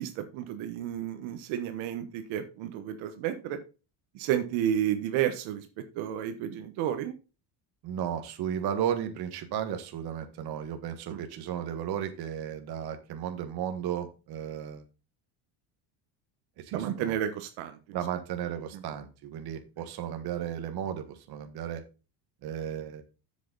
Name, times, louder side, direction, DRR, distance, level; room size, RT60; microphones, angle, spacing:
voice 1, 0.0-3.6 4.1-5.7 6.0-7.1 11.1-11.2 16.7-17.8, right 10 dB, 75° right, 8 dB, 1.3 m, -31 dB
voice 2, 7.8-14.8 16.6-17.1 17.9-21.8 22.4-23.0, right 9 dB, 50° right, 7 dB, 1.5 m, -34 dB
7.7 x 7.3 x 3.9 m, 0.31 s
cardioid pair, 155°, 47 cm